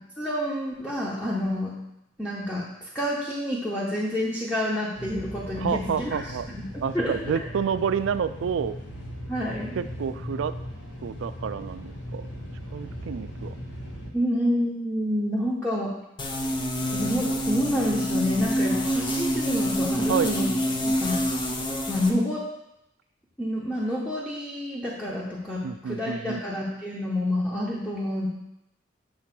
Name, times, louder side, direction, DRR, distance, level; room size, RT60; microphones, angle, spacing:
voice 1, 0.2-1.8 2.2-6.2 6.5-7.4 9.3-9.8 14.1-15.9 16.9-20.5 20.8-21.2 21.9-22.4 23.4-28.3, left 1 dB, 5° left, -6 dB, 1.0 m, -28 dB
sound 1, 4.9-14.1, equal, 70° left, 1.1 m, -38 dB
voice 2, 5.6-6.5 6.8-8.8 9.8-10.6 11.0-12.3 12.7-13.6 20.1-20.4 25.6-26.4, right 7 dB, 80° right, 14 dB, 0.3 m, -29 dB
sound 2, 16.2-22.1, equal, 25° left, 0.6 m, -26 dB
7.6 x 2.9 x 5.9 m, 0.86 s
head